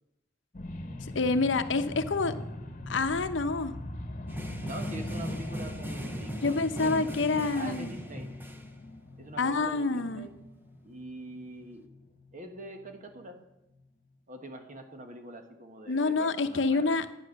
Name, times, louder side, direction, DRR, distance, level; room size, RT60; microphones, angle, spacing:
sound 1, 0.5-13.2 13.7-13.8, left 1 dB, 40° left, 1.1 m, -41 dB
voice 1, 1.1-2.3 2.9-3.7 6.3-7.9 9.4-10.3 15.9-17.1, left 3 dB, 75° left, 10 dB, 0.8 m, -27 dB
sound 2, 4.3-8.7, equal, 10° right, 0.8 m, -39 dB
voice 2, 4.6-8.3 9.2-10.4 10.8-11.9 12.3-13.4 14.3-16.9, right 2 dB, 45° right, 5 dB, 1.4 m, -44 dB
11.5 x 9.0 x 6.5 m, 0.95 s
head